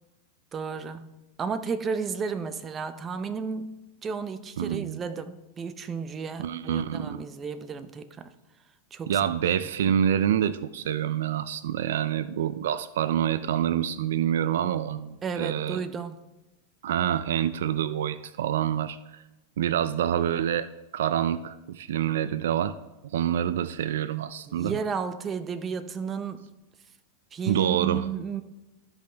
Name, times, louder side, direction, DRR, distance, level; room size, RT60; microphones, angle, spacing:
voice 1, 0.5-1.1 1.4-8.3 8.9-9.2 15.2-16.2 24.5-26.5 27.3-28.4, right 5 dB, 25° right, 10 dB, 0.7 m, -33 dB
voice 2, 4.6-5.0 6.4-7.2 9.1-15.8 16.8-19.2 19.6-22.8 23.1-24.8 27.5-28.1, right 10 dB, 80° right, 14 dB, 0.4 m, -27 dB
13.5 x 5.3 x 3.4 m, 1.0 s
supercardioid pair, 125°, 0 cm